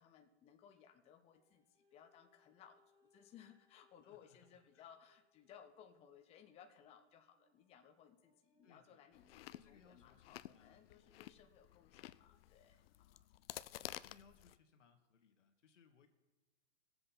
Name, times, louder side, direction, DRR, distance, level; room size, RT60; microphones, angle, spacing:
voice 1, 0.0-13.3, left 8 dB, 15° left, 5 dB, 0.7 m, -62 dB
sound 1, 1.3-10.4 11.1-11.2, left 2 dB, 10° right, 1.7 m, -79 dB
voice 2, 4.0-4.9 8.6-9.0 9.5-10.9 13.8-16.1, left 6 dB, 85° left, 5 dB, 1.8 m, -68 dB
Chewing mastication, 9.1-14.6, left 14 dB, 55° left, 0.5 m, -53 dB
21.5 x 7.8 x 4.3 m, 1.1 s
hypercardioid pair, 135°, 36 cm